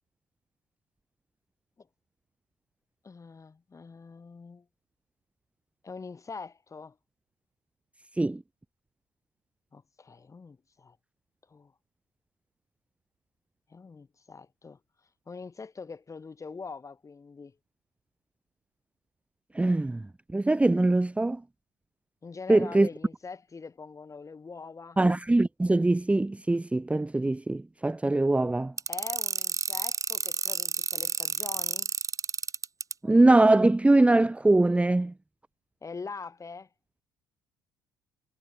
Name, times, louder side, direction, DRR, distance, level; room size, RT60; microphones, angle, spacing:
voice 1, 3.0-4.7 5.8-7.0 9.7-11.0 11.5-11.7 13.7-14.8 15.3-17.6 22.2-25.0 28.9-31.9 35.8-36.7, left 4 dB, 30° left, 7.9 m, -43 dB
voice 2, 19.5-20.0 20.3-21.4 22.5-22.9 25.0-28.7 33.0-35.1, right 2 dB, 10° right, 1.1 m, -22 dB
sound 1, 28.8-32.9, right 5 dB, 30° right, 2.6 m, -30 dB
hypercardioid pair, 65°, 10 cm